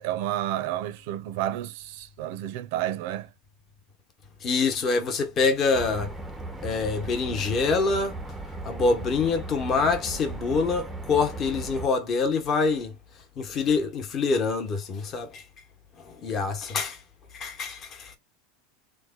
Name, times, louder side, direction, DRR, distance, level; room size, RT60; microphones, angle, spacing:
voice 1, 0.0-3.3, right 13 dB, 65° right, 0.5 m, -30 dB
voice 2, 4.4-6.1 6.6-8.2 8.6-12.9 13.4-15.4 16.0-17.0 17.3-18.1, left 4 dB, 35° left, 1.0 m, -25 dB
sound 1, 5.7-11.9, right 2 dB, 5° right, 0.5 m, -37 dB
3.1 x 2.2 x 3.7 m
supercardioid pair, 135°, 0 cm